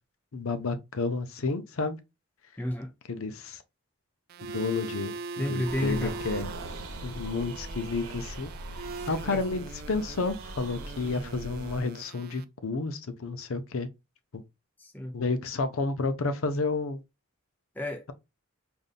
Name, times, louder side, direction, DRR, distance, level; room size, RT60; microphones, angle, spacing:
voice 1, 0.3-2.0 3.1-3.6 4.5-6.5 7.0-8.5 9.0-13.9 14.3-14.4 15.1-17.0, left 3 dB, 70° left, 0.6 m, -31 dB
voice 2, 2.6-2.9 5.4-6.2 9.1-9.4 14.8-15.1 17.8-18.1, left 1 dB, 10° left, 0.5 m, -32 dB
sound 1, 4.3-12.4, right 4 dB, 45° right, 0.3 m, -41 dB
sound 2, 5.6-11.8, right 1 dB, 80° right, 1.0 m, -41 dB
5.2 x 2.6 x 2.4 m
head